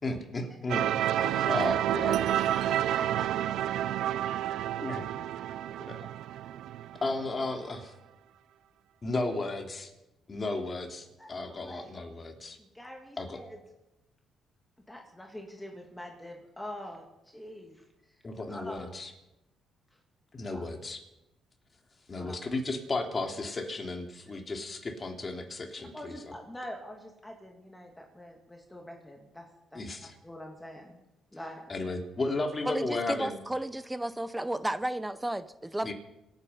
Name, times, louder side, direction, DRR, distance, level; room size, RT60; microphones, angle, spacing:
voice 1, 0.0-1.1 1.5-2.3 4.8-5.1 5.8-6.0 7.0-7.9 9.0-9.9 10.3-12.6 13.2-13.4 18.2-19.1 20.3-21.0 22.1-26.3 29.7-30.1 31.7-33.4 35.8-35.9, left 2 dB, 30° left, 3 dB, 3.1 m, -34 dB
sound 1, 0.7-7.5, right 11 dB, 85° right, 0.5 m, -30 dB
voice 2, 1.2-4.3 11.2-11.9 12.6-13.6 14.9-17.8 18.5-18.9 20.5-20.6 22.2-22.4 25.9-29.5 29.7-31.0 31.3-31.6, left 1 dB, 10° left, 1 dB, 2.6 m, -45 dB
voice 3, 32.7-35.9, right 1 dB, 10° right, 14 dB, 0.8 m, -33 dB
26.5 x 9.6 x 5.7 m, 0.94 s
cardioid pair, 90°, 0 cm